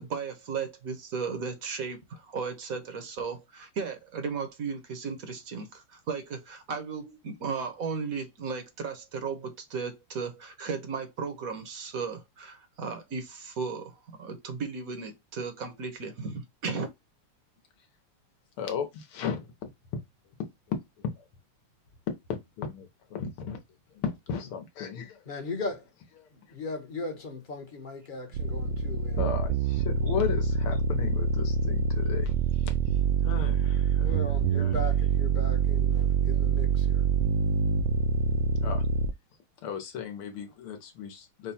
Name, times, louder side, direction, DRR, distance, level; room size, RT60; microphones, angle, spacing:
voice 1, 0.0-16.9, right 5 dB, 55° right, 1.1 m, -35 dB
voice 2, 18.6-19.5 20.7-21.2 22.3-23.6 24.0-25.2 29.2-32.7 33.2-34.2 34.5-34.8 38.6-38.8 39.6-41.5, left 7 dB, 80° left, 1.9 m, -35 dB
voice 3, 25.3-25.9 26.3-29.4 34.0-37.1, left 3 dB, 35° left, 0.8 m, -38 dB
sound 1, 28.3-39.1, right 5 dB, 75° right, 1.2 m, -26 dB
5.3 x 2.3 x 4.1 m
omnidirectional pair, 2.4 m